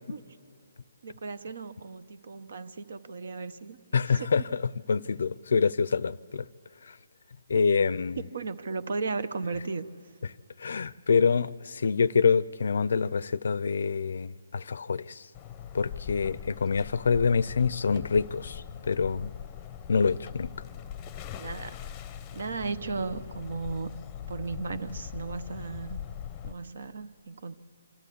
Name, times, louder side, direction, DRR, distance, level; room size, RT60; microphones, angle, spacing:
voice 1, 1.0-4.5 7.5-7.6 8.1-9.9 17.8-18.1 21.4-21.8 22.3-24.0 24.3-26.0 26.4-27.6, right 4 dB, 65° right, 13 dB, 0.9 m, -36 dB
voice 2, 3.9-4.4 4.9-6.5 7.5-8.2 10.6-15.2 15.7-19.3 19.9-20.5, left 5 dB, 70° left, 21 dB, 0.4 m, -26 dB
sound 1, 15.3-26.5, left 9 dB, 20° left, 0.7 m, -41 dB
25.0 x 12.5 x 8.4 m, 2.6 s
hypercardioid pair, 160°, 0 cm